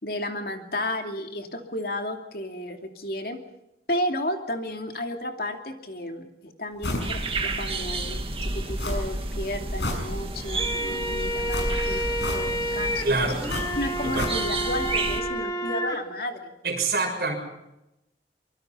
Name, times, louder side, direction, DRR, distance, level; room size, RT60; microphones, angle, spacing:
voice 1, 0.0-3.4 3.9-12.1 12.3-13.3 13.8-16.5, left 1 dB, 55° left, 4 dB, 2.7 m, -32 dB
sound 1, 6.8-7.1 7.5-7.6 8.8-9.3 9.6-10.5 11.5-12.8 13.5-14.7 15.0-15.1, left 1 dB, 80° left, 6.6 m, -32 dB
sound 2, 7.0-15.2, right 2 dB, 30° right, 2.3 m, -31 dB
sound 3, 10.4-16.0, equal, 20° left, 2.6 m, -30 dB
voice 2, 13.0-13.4 14.0-14.3 16.6-17.3, right 3 dB, 55° right, 3 dB, 6.5 m, -25 dB
24.5 x 23.5 x 5.6 m, 0.90 s
head